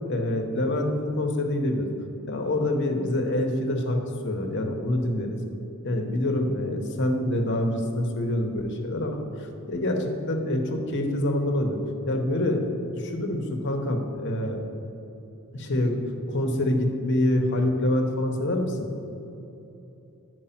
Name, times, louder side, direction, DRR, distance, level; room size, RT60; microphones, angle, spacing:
voice 1, 0.1-1.9 2.2-5.3 5.8-11.8 12.1-14.6 15.5-16.0 16.3-18.9, left 1 dB, 55° left, 3 dB, 0.9 m, -26 dB
10.0 x 4.7 x 5.8 m, 3.0 s
head